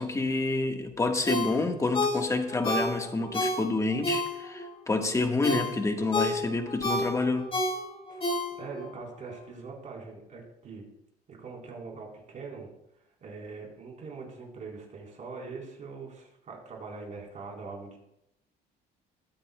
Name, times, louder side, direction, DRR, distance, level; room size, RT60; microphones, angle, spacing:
voice 1, 0.0-7.5, left 3 dB, 20° left, 4 dB, 1.4 m, -28 dB
Ringtone, 1.2-4.7 5.1-8.9 9.3-9.4, left 1 dB, 35° left, 3.7 m, -30 dB
voice 2, 8.6-10.9 11.3-12.7 13.2-18.0, right 4 dB, 45° right, -1 dB, 3.8 m, -42 dB
21.0 x 8.7 x 2.2 m, 0.83 s
cardioid pair, 110°, 17 cm